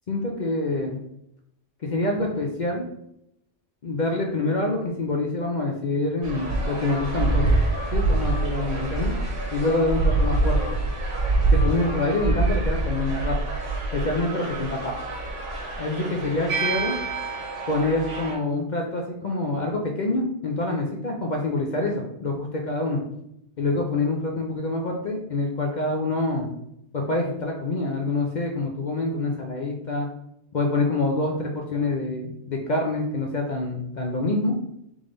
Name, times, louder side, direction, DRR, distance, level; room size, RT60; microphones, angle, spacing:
voice 1, 0.1-1.0 1.8-2.8 3.8-7.6 7.9-9.2 9.5-10.8 11.5-13.4 13.9-15.1 15.8-17.0 17.7-23.0 23.6-26.5 26.9-30.1 30.5-34.6, left 2 dB, 50° left, 0 dB, 0.6 m, -26 dB
sound 1, 6.2-18.3, right 2 dB, 80° right, 1.5 m, -25 dB
3.6 x 3.4 x 3.8 m, 0.79 s
omnidirectional pair, 1.3 m